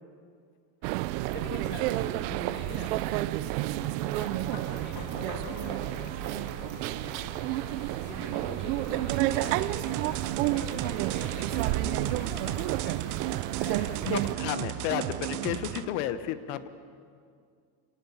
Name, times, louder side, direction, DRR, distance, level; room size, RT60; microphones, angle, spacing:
sound 1, 0.8-14.4, right 17 dB, 75° right, 0.7 m, -31 dB
voice 1, 1.3-7.4 8.0-13.0 13.5-14.6, left 1 dB, 20° left, -1 dB, 5.4 m, -43 dB
sound 2, 4.5-15.9, left 3 dB, 45° left, 3.5 m, -47 dB
sound 3, 9.1-15.9, right 14 dB, 40° right, 0.6 m, -34 dB
voice 2, 14.0-16.7, left 11 dB, 70° left, 12 dB, 1.3 m, -32 dB
26.5 x 18.0 x 7.2 m, 2.2 s
cardioid pair, 165°, 49 cm